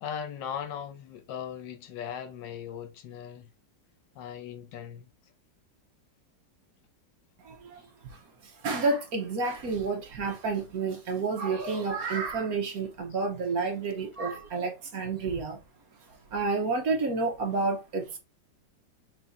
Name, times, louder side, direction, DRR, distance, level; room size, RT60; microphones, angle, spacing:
voice 1, 0.0-3.5 4.1-5.1 7.7-7.8, left 8 dB, 80° left, 1.4 m, -38 dB
voice 2, 7.4-7.8 8.1-15.6 16.3-18.2, right 4 dB, 60° right, 1.3 m, -30 dB
6.0 x 3.3 x 2.6 m
omnidirectional pair, 2.0 m